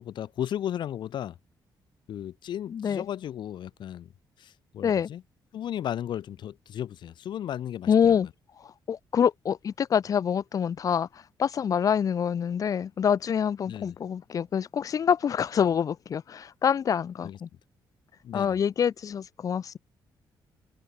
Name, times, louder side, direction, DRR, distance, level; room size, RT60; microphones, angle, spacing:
voice 1, 0.0-1.4 2.1-4.1 4.4-5.2 5.5-8.2 13.7-13.9 17.2-17.4 18.2-18.6, left 10 dB, 70° left, 0.9 m, -35 dB
voice 2, 2.7-3.1 4.8-5.1 7.9-8.3 8.9-11.1 11.4-17.5 18.3-19.8, left 8 dB, 45° left, 0.5 m, -26 dB
cardioid pair, 100°, 8 cm